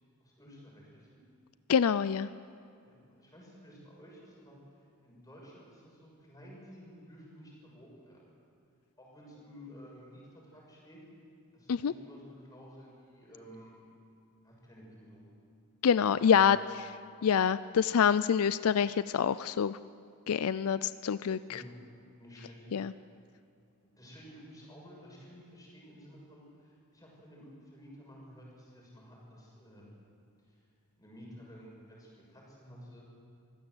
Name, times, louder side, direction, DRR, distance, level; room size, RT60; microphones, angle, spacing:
voice 1, 0.2-1.2 2.8-4.6 5.0-8.2 9.0-11.0 11.5-13.8 14.4-15.2 16.1-16.6 21.5-21.7 22.2-23.0 24.0-30.1 30.4-30.6 31.0-33.0, equal, 15° left, -3 dB, 6.8 m, -52 dB
voice 2, 1.7-2.3 11.7-11.9 15.8-16.6 17.2-19.8 20.3-21.6 22.7-22.9, left 7 dB, 75° left, 16 dB, 0.4 m, -26 dB
24.0 x 15.5 x 8.0 m, 2.3 s
head